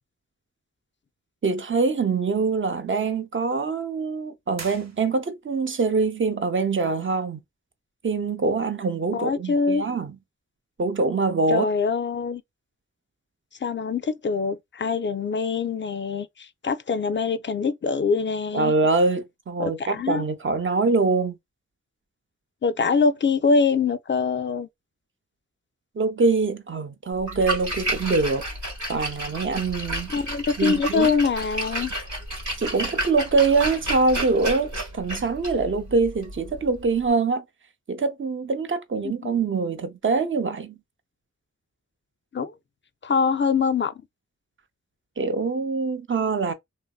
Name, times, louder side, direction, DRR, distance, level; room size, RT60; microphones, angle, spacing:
voice 1, 1.4-7.4 8.0-10.1 10.8-11.7 18.5-21.4 26.0-28.4 28.9-30.1 30.6-31.1 32.6-37.4 37.9-40.8 45.2-46.5, right 4 dB, 45° right, 0.6 m, -24 dB
sound 1, 4.5-5.6, right 3 dB, 65° right, 0.9 m, -43 dB
voice 2, 9.1-9.8 11.5-12.4 13.6-18.7 19.6-20.2 22.6-24.7 30.1-31.9 39.2-39.3 42.3-42.5 43.0-43.9, left 5 dB, 40° left, 0.4 m, -24 dB
Splash splatter, 27.2-37.1, right 1 dB, 85° right, 1.4 m, -32 dB
2.9 x 2.5 x 2.3 m
cardioid pair, 50°, 29 cm